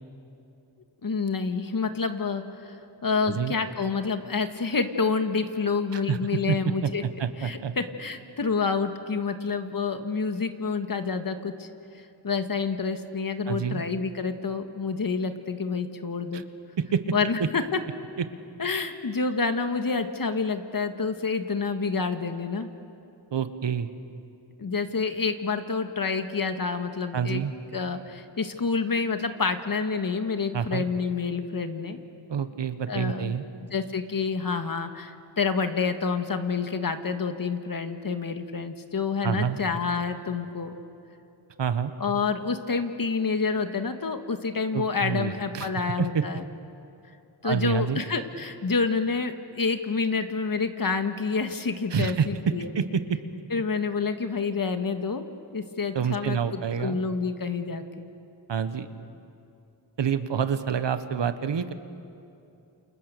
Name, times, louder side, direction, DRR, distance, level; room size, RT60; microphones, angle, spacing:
voice 1, 1.0-7.0 7.4-11.7 12.2-16.4 17.1-17.8 18.6-22.7 24.6-27.4 27.7-32.0 32.9-33.4 33.7-40.8 42.0-46.4 47.4-52.7 53.5-55.3 55.5-58.1, left 4 dB, 50° left, 7 dB, 1.9 m, -28 dB
voice 2, 7.2-7.7 13.5-13.8 16.3-16.4 16.9-17.0 23.3-23.9 27.1-27.5 30.5-30.8 32.3-33.4 39.2-39.6 41.6-41.9 44.7-45.7 46.0-46.2 47.4-48.0 51.9-52.3 52.7-53.2 55.9-57.0 58.5-58.9 60.0-61.7, right 7 dB, 70° right, 10 dB, 1.5 m, -27 dB
30.0 x 28.5 x 6.9 m, 2.7 s
cardioid pair, 65°, 44 cm